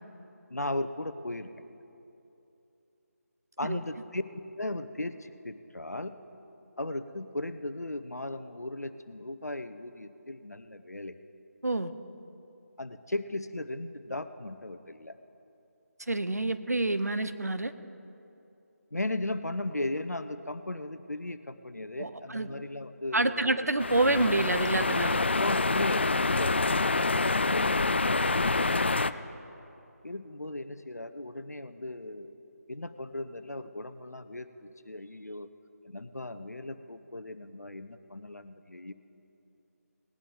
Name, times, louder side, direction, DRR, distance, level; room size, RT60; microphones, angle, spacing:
voice 1, 0.5-1.7 3.6-4.2 4.6-6.1 6.8-11.2 12.8-15.2 18.9-23.7 25.2-29.4 30.0-32.3 32.7-35.5 35.8-38.9, left 2 dB, 75° left, 11 dB, 0.7 m, -37 dB
voice 2, 16.1-17.7 22.0-22.5 23.1-25.2, right 2 dB, 70° right, 11 dB, 0.8 m, -27 dB
sound 1, 23.8-29.1, left 3 dB, 45° left, 0.3 m, -26 dB
19.5 x 11.0 x 3.9 m, 2.8 s
figure-of-eight pair, 160°, 9 cm